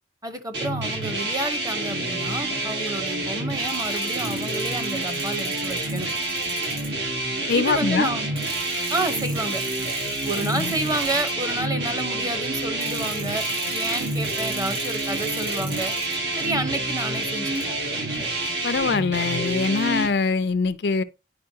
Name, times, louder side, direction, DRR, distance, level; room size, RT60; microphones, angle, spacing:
voice 1, 0.2-6.1 7.5-8.3 8.9-9.6 10.2-13.4 13.7-15.9 16.4-17.7 19.2-19.3, right 2 dB, 20° right, 1.0 m, -29 dB
sound 1, 0.5-20.1, right 2 dB, 75° right, 1.7 m, -28 dB
sound 2, 3.6-7.1 7.8-7.9 8.4-11.3 12.8-16.2 16.7-17.1 17.5-17.6 18.1-19.0, right 3 dB, 55° right, 5.0 m, -39 dB
voice 2, 7.5-8.1 10.5-10.7 18.6-21.0, left 4 dB, 65° left, 0.5 m, -23 dB
9.5 x 5.2 x 2.8 m
head